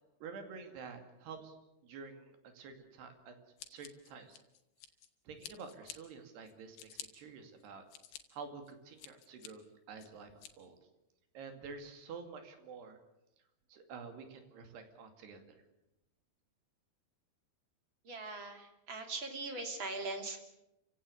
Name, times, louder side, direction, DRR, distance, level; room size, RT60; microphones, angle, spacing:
voice 1, 0.2-1.5 1.8-3.4 3.7-4.4 5.3-7.8 8.3-9.6 9.9-10.3 10.6-10.8 11.3-13.0 13.7-15.4, right 5 dB, 75° right, 7 dB, 4.5 m, -49 dB
Scissors, 3.6-5.1 5.4-6.0 6.5-7.1 7.6-8.2 8.7-9.5 10.0-10.5, left 10 dB, 75° left, 3.5 m, -49 dB
voice 2, 18.0-20.4, right 3 dB, 30° right, 5 dB, 3.2 m, -41 dB
28.5 x 17.0 x 8.4 m, 0.92 s
omnidirectional pair, 4.7 m